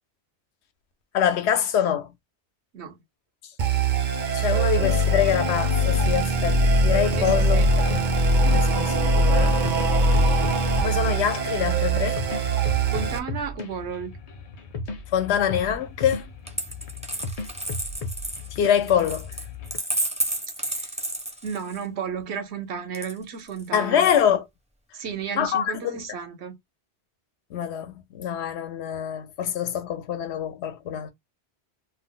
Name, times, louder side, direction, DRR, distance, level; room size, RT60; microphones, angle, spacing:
voice 1, 1.1-2.1 4.3-9.6 10.8-12.2 15.1-16.2 18.6-19.3 23.7-24.5 25.4-26.0 27.5-31.1, left 9 dB, 85° left, 0.8 m, -25 dB
sound 1, 3.6-13.2, right 2 dB, 55° right, 0.7 m, -22 dB
sound 2, 6.0-19.8, left 3 dB, 50° left, 0.5 m, -36 dB
voice 2, 7.2-7.7 12.9-14.1 20.6-20.9 21.4-24.0 24.9-26.6, right 6 dB, 80° right, 1.1 m, -33 dB
Coin (dropping), 16.5-21.9 22.9-23.7, right 1 dB, 10° right, 0.4 m, -31 dB
2.5 x 2.0 x 3.7 m
omnidirectional pair, 1.1 m